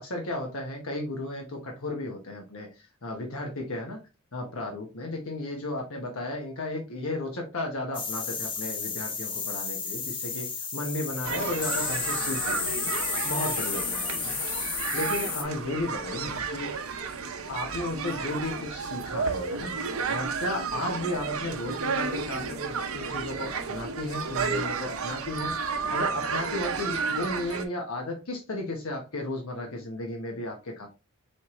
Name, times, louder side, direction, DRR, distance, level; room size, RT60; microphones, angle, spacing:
voice 1, 0.0-4.0 4.3-12.7 13.2-14.4 14.9-16.7 17.5-30.9, left 1 dB, 75° left, 1 dB, 1.0 m, -34 dB
sound 1, 7.9-15.4, left 5 dB, 25° left, 0.6 m, -32 dB
sound 2, 11.2-27.6, right 5 dB, 75° right, 0.6 m, -32 dB
4.4 x 3.3 x 3.0 m, 0.28 s
head